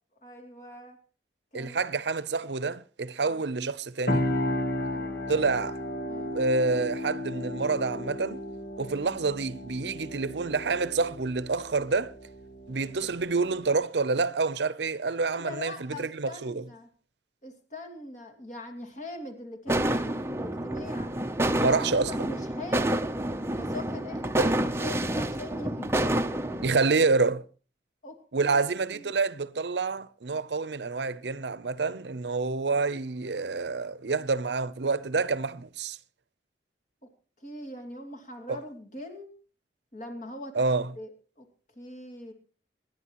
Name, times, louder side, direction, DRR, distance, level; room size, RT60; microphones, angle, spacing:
voice 1, 0.2-1.0 1.5-1.8 3.2-3.4 4.9-5.5 6.1-6.3 15.3-16.9 17.4-21.1 21.6-23.1 23.5-24.3 24.6-26.9 28.0-28.2 28.4-29.1 37.4-39.4 39.9-40.6 41.0-41.1 41.4-41.5 41.8-42.3, left 1 dB, 45° left, 2.8 m, -42 dB
voice 2, 1.5-4.3 5.3-5.8 6.3-8.4 8.8-12.1 12.7-16.6 21.6-22.1 24.4-24.6 26.6-27.4 28.3-36.0 38.5-38.6 40.5-40.9, right 4 dB, 80° right, 0.7 m, -28 dB
sound 1, 4.1-13.8, left 1 dB, 60° left, 1.7 m, -34 dB
sound 2, 19.7-26.7, right 1 dB, 15° right, 0.6 m, -28 dB
26.0 x 10.5 x 3.0 m
head